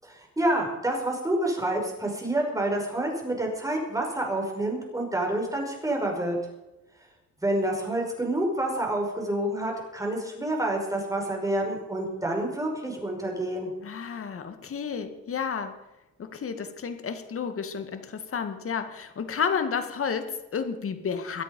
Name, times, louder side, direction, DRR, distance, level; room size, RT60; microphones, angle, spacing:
voice 1, 0.0-6.4 7.4-13.7, right 1 dB, 10° right, 0 dB, 5.3 m, -28 dB
voice 2, 13.8-15.7 16.2-21.4, left 6 dB, 45° left, 8 dB, 1.9 m, -31 dB
23.0 x 8.4 x 5.4 m, 1.0 s
cardioid pair, 90°, 30 cm